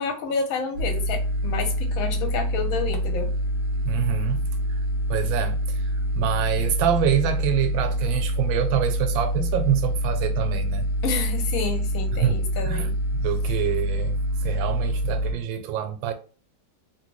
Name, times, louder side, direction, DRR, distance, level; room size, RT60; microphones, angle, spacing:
voice 1, 0.0-3.3 11.0-12.9, left 5 dB, 60° left, 1.0 m, -29 dB
sound 1, 0.7-15.3, equal, 65° right, 0.6 m, -26 dB
voice 2, 3.8-4.4 4.7-4.8 5.1-10.9 12.1-12.4 12.6-16.1, right 9 dB, 85° right, 1.4 m, -26 dB
3.0 x 2.7 x 3.0 m
omnidirectional pair, 2.1 m